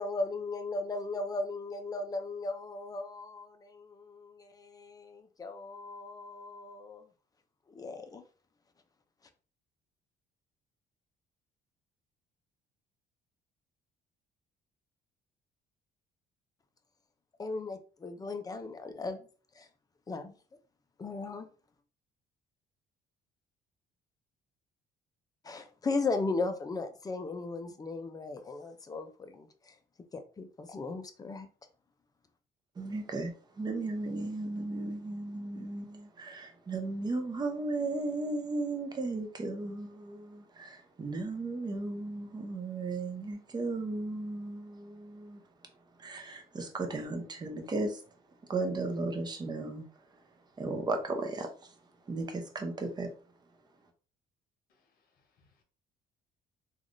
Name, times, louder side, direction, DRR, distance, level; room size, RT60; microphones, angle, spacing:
voice 1, 0.0-7.0 7.7-8.2 17.4-19.3 19.5-19.7 20.1-20.3 21.0-21.5 25.4-29.8 30.1-31.5, left 3 dB, 20° left, 0.4 m, -37 dB
voice 2, 32.8-45.4 46.0-48.0 48.5-49.9 50.6-51.7 52.1-53.1, right 2 dB, 25° right, 0.7 m, -35 dB
voice 3, 54.7-55.6, left 4 dB, 60° left, 0.9 m, -72 dB
3.3 x 2.4 x 2.5 m
cardioid pair, 110°, 17 cm